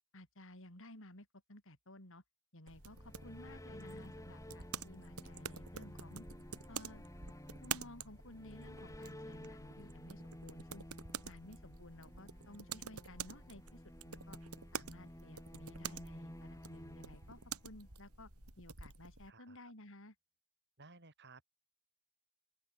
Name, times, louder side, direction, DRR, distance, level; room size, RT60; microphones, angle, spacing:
voice 1, 0.1-2.2 2.5-6.2 6.7-7.0 7.6-10.8 11.2-14.4 14.7-18.3 18.6-20.1, left 1 dB, 60° left, 6.4 m, -55 dB
sound 1, 2.7-19.3, right 6 dB, 85° right, 6.8 m, -48 dB
sound 2, 2.8-18.0, left 1 dB, 15° left, 2.3 m, -53 dB
voice 2, 19.3-19.7 20.8-21.5, right 3 dB, 50° right, 5.8 m, -58 dB
open air
head